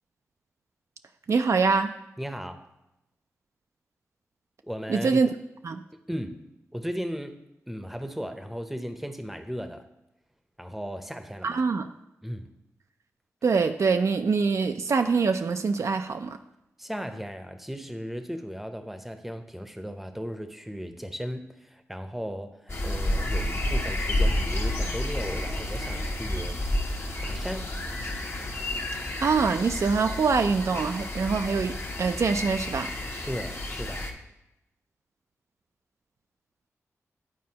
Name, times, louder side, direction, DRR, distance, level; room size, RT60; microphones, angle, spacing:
voice 1, 1.3-1.9 4.9-5.3 5.6-5.8 11.4-11.9 13.4-16.4 29.2-32.9, right 4 dB, 60° right, 7 dB, 0.4 m, -24 dB
voice 2, 2.2-2.7 4.7-5.2 5.9-6.5 6.7-7.4 7.7-9.8 10.6-11.6 12.2-12.5 16.8-26.5 27.2-27.7 33.3-34.1, equal, 5° right, 7 dB, 0.7 m, -36 dB
sound 1, 22.7-34.1, left 1 dB, 50° left, 0.9 m, -30 dB
9.6 x 4.2 x 2.8 m, 0.90 s
cardioid pair, 45°, 6 cm